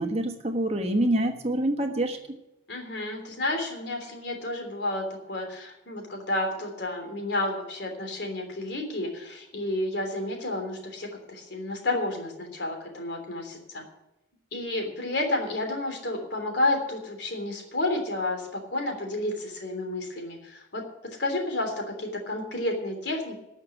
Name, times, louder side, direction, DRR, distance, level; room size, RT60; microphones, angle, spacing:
voice 1, 0.0-2.2, right 1 dB, 35° right, 5 dB, 1.2 m, -26 dB
voice 2, 2.7-13.8 14.5-20.8 21.2-23.4, left 2 dB, 70° left, 3 dB, 3.3 m, -31 dB
13.0 x 6.6 x 9.9 m, 0.92 s
head